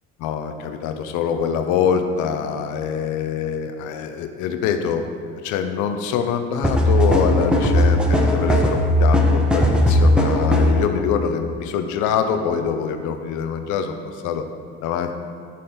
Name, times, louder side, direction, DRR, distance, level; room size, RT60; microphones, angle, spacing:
voice 1, 0.2-5.0 5.4-14.4 14.8-15.2, left 7 dB, 75° left, 7 dB, 0.8 m, -24 dB
sound 1, 6.6-10.8, left 1 dB, 5° right, 1.3 m, -17 dB
11.5 x 4.2 x 5.2 m, 2.2 s
hypercardioid pair, 65°, 30 cm